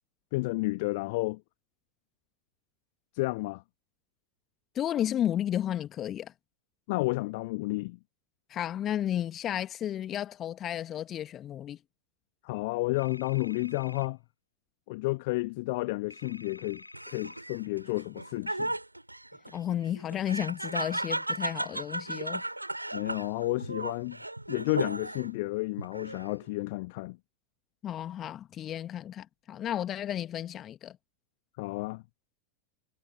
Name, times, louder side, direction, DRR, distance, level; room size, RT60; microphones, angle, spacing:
voice 1, 0.3-1.4 3.1-3.6 6.9-8.0 12.4-14.2 14.9-18.7 22.9-24.2 24.5-27.2 31.6-32.0, left 23 dB, 50° left, 1.4 m, -31 dB
voice 2, 4.8-6.3 8.5-11.8 19.5-22.4 27.8-31.0, left 11 dB, 30° left, 1.8 m, -33 dB
Cordless phone ring, 13.0-14.1 16.1-17.4, left 2 dB, 85° left, 6.7 m, -50 dB
Laughter, 16.9-25.4 25.8-26.5, right 1 dB, 85° right, 5.0 m, -36 dB
figure-of-eight pair, 90°, 0 cm